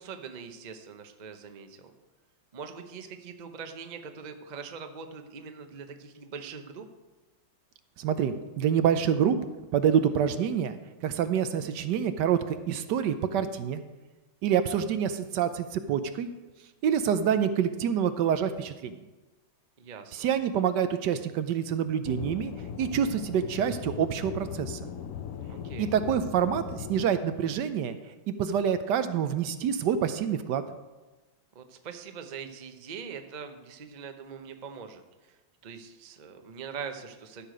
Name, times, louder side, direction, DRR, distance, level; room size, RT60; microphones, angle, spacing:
voice 1, 0.0-1.9 2.5-6.9 19.8-20.3 25.5-25.9 31.5-37.5, right 6 dB, 90° right, 7 dB, 0.4 m, -42 dB
voice 2, 8.0-9.4 9.7-13.8 14.4-16.3 16.8-19.0 20.1-22.5 22.8-24.8 25.8-28.0 28.3-30.6, right 8 dB, 70° right, 10 dB, 1.2 m, -27 dB
Aircraft / Engine, 22.0-27.0, left 8 dB, 65° left, 0.8 m, -38 dB
13.5 x 6.6 x 5.1 m, 1.2 s
omnidirectional pair, 2.2 m